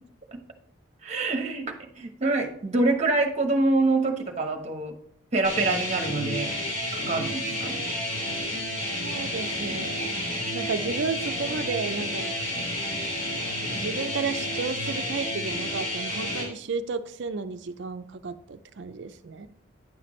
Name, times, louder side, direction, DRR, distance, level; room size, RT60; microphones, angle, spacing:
voice 1, 1.0-4.9 5.3-6.5 6.9-7.8, right 2 dB, 35° right, 4 dB, 1.0 m, -26 dB
sound 1, 5.4-16.4, left 1 dB, 70° left, 3.0 m, -30 dB
voice 2, 9.0-12.4 13.7-19.5, right 4 dB, 55° right, 10 dB, 0.5 m, -33 dB
9.5 x 5.9 x 3.1 m, 0.63 s
head